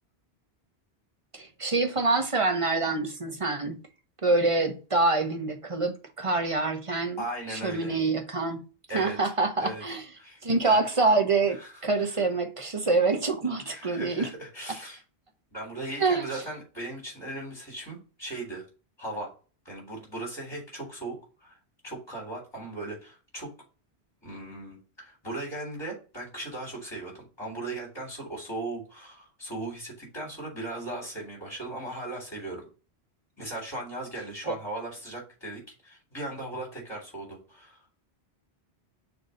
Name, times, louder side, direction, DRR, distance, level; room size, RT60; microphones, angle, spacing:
voice 1, 1.3-3.8 4.2-7.2 7.5-8.6 8.9-10.0 10.4-14.3 16.0-16.4 34.4-34.6, right 3 dB, 35° right, 0.9 m, -26 dB
voice 2, 7.2-8.0 8.9-9.3 9.6-9.8 10.2-10.8 11.5-11.7 13.7-15.0 15.5-18.7 19.0-19.3 19.7-21.6 21.8-23.5 24.2-32.7 33.4-37.8, right 2 dB, 25° left, 3.7 m, -38 dB
6.5 x 2.8 x 5.1 m
omnidirectional pair, 1.1 m